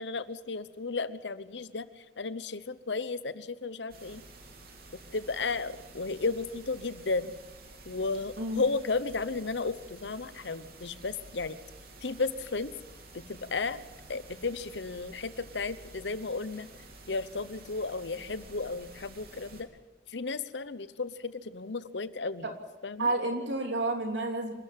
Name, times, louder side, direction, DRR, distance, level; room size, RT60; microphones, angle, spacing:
voice 1, 0.0-1.9 2.2-4.2 5.1-7.3 7.9-11.6 12.0-12.7 13.1-13.8 14.1-16.7 17.1-19.7 20.1-22.5 22.8-23.1, left 3 dB, 90° left, 15 dB, 1.0 m, -34 dB
sound 1, 3.9-19.6, right 2 dB, 60° right, 3.5 m, -51 dB
voice 2, 23.0-24.5, right 2 dB, 90° right, 4 dB, 3.3 m, -30 dB
27.0 x 13.5 x 7.6 m, 1.2 s
head